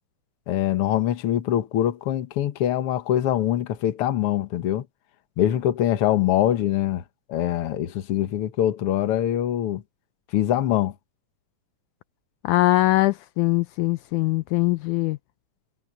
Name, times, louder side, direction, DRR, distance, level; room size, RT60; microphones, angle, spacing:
voice 1, 0.5-4.8 5.4-7.0 7.3-9.8 10.3-10.9, left 11 dB, 55° left, 1.8 m, -23 dB
voice 2, 12.4-15.2, left 18 dB, 80° left, 1.9 m, -22 dB
omnidirectional pair, 3.6 m